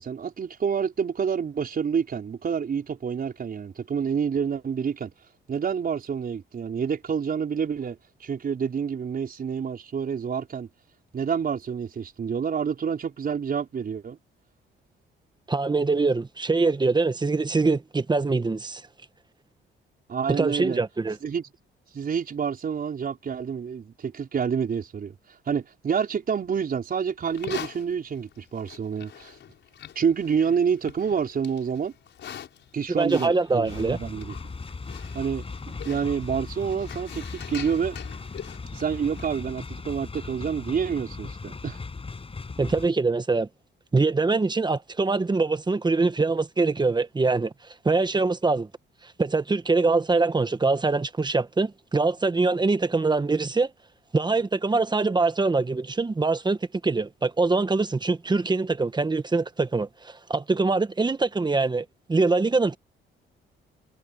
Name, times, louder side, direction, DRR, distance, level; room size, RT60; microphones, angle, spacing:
voice 1, 0.0-5.1 5.5-10.7 11.1-14.2 20.1-20.8 21.2-21.5 21.9-29.4 30.0-31.9 32.7-34.3 35.1-38.0 38.7-41.8, right 7 dB, 45° right, 5.1 m, -28 dB
voice 2, 15.5-18.8 20.3-21.2 33.0-34.0 42.6-43.5 43.9-47.5 47.8-48.7 49.0-53.7 54.1-56.6 56.8-62.8, right 3 dB, 20° right, 1.3 m, -23 dB
Livestock farm animals working animals, 27.3-39.5, left 9 dB, 65° left, 5.7 m, -44 dB
sound 1, 33.7-42.9, left 4 dB, 30° left, 5.9 m, -38 dB
cardioid pair, 90°, 20 cm